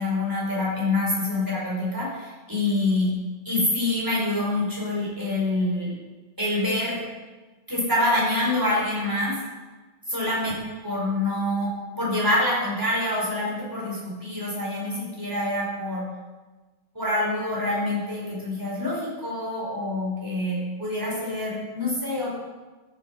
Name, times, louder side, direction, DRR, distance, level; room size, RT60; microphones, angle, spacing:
voice 1, 0.0-3.1 3.4-5.9 6.4-7.0 7.7-9.4 10.1-10.5 10.8-16.1 16.9-22.3, left 1 dB, 10° right, -5 dB, 4.6 m, -26 dB
13.0 x 8.1 x 5.9 m, 1.3 s
omnidirectional pair, 2.3 m